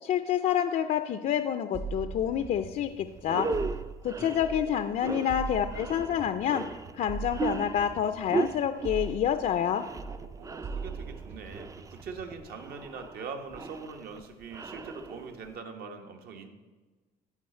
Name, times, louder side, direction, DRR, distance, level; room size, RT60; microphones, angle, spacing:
voice 1, 0.0-3.5 4.0-6.6 6.9-9.8, left 9 dB, 50° left, 9 dB, 0.4 m, -28 dB
sound 1, 1.7-4.8 5.3-9.7 10.0-12.4, right 5 dB, 85° right, 2.3 m, -41 dB
sound 2, 2.7-2.8 3.2-15.5, right 3 dB, 20° right, 0.4 m, -37 dB
voice 2, 10.4-16.5, right 5 dB, 65° right, 5 dB, 1.1 m, -42 dB
13.0 x 4.8 x 4.4 m, 1.3 s
cardioid pair, 110°, 17 cm